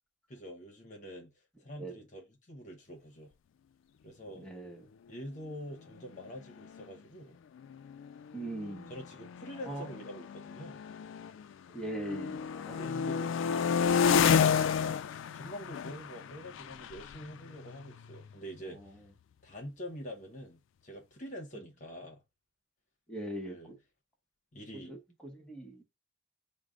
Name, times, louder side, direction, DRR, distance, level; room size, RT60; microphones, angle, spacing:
voice 1, 0.3-1.3 1.6-3.3 4.0-4.5 5.1-7.4 8.6-10.8 12.7-18.8 19.4-22.2 23.4-23.7 24.5-24.9, equal, 40° left, 0.9 m, -45 dB
voice 2, 4.3-4.8 8.3-8.9 9.6-9.9 11.7-13.5 18.6-19.0 23.1-23.8 24.7-25.0 25.2-25.8, right 1 dB, 5° left, 0.9 m, -41 dB
sound 1, 6.1-6.2 6.5-6.8 7.6-11.5 11.9-18.5, left 7 dB, 90° left, 0.3 m, -31 dB
4.8 x 2.1 x 3.7 m
head